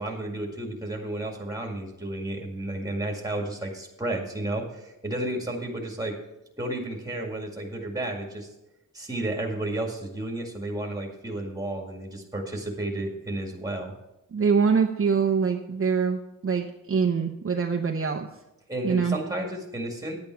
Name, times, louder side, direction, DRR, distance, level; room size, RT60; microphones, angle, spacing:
voice 1, 0.0-6.2 6.6-8.5 8.9-13.9 18.7-20.2, right 1 dB, 10° right, 1 dB, 2.0 m, -32 dB
voice 2, 14.3-18.3 18.8-19.1, right 5 dB, 40° right, 2 dB, 0.8 m, -24 dB
10.5 x 8.8 x 4.5 m, 0.94 s
wide cardioid pair, 155°, 34 cm